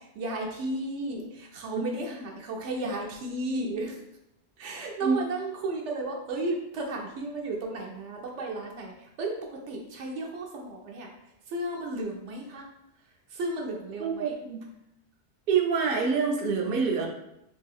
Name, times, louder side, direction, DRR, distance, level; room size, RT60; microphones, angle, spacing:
voice 1, 0.0-4.0 4.6-11.1 11.5-12.7 13.3-14.3, right 2 dB, 90° right, 0 dB, 0.9 m, -34 dB
voice 2, 14.0-14.6 15.5-17.1, right 5 dB, 60° right, 2 dB, 0.7 m, -26 dB
3.4 x 2.7 x 2.3 m, 0.82 s
omnidirectional pair, 1.2 m